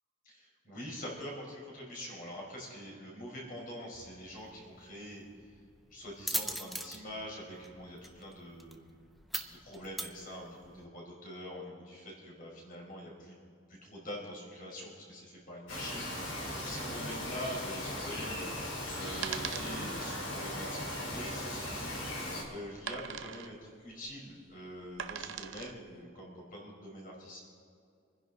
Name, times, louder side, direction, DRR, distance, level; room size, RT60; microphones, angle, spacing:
voice 1, 0.2-5.2 5.9-9.0 9.5-13.4 13.7-18.4 18.9-22.0 22.5-27.4, equal, 45° left, -2 dB, 4.8 m, -44 dB
sound 1, 3.9-10.9, equal, ahead, 0.6 m, -42 dB
Bird vocalization bird call bird song, 15.7-22.4, left 1 dB, 70° left, 4.0 m, -38 dB
sound 2, 19.2-25.9, right 8 dB, 70° right, 0.7 m, -43 dB
26.5 x 10.5 x 4.0 m, 2.4 s
head